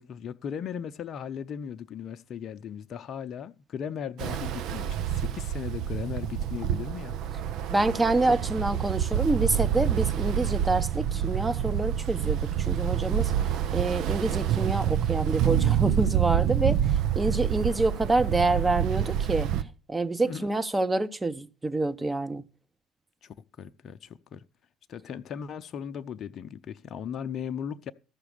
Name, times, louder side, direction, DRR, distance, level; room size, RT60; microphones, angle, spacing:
voice 1, 0.0-7.2 7.4-7.6 8.3-8.4 20.2-20.5 23.2-24.4 24.9-27.9, left 8 dB, 50° left, 0.6 m, -37 dB
Ocean, 4.2-19.6, right 10 dB, 65° right, 0.6 m, -27 dB
voice 2, 7.7-22.4, right 2 dB, 20° right, 0.9 m, -27 dB
13.5 x 5.9 x 6.8 m
hypercardioid pair, 60°, 0 cm